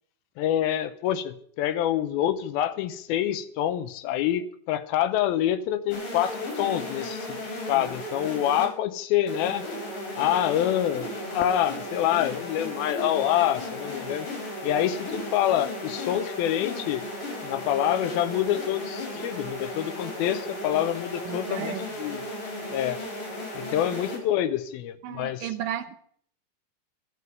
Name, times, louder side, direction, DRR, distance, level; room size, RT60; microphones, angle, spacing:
voice 1, 0.4-9.7 10.2-14.3 14.6-17.0 17.4-22.2 22.7-23.0 23.5-25.5, left 11 dB, 80° left, 12 dB, 2.5 m, -26 dB
sound 1, 5.9-8.7 9.3-24.2, left 1 dB, 60° left, 5.6 m, -35 dB
voice 2, 21.3-21.9 25.0-26.0, right 11 dB, 80° right, 9 dB, 1.8 m, -33 dB
13.0 x 7.7 x 9.1 m, 0.63 s
omnidirectional pair, 4.6 m